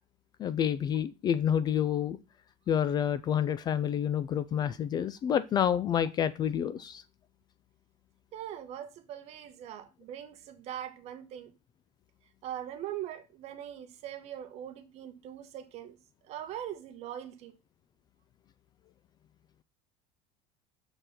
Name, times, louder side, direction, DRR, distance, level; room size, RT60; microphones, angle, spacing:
voice 1, 0.4-2.2 2.7-7.0, left 9 dB, 25° left, 0.3 m, -28 dB
voice 2, 8.3-11.5 12.4-16.0 16.2-17.6, right 11 dB, 45° right, 1.1 m, -41 dB
6.7 x 4.5 x 5.7 m
cardioid pair, 160°, 16 cm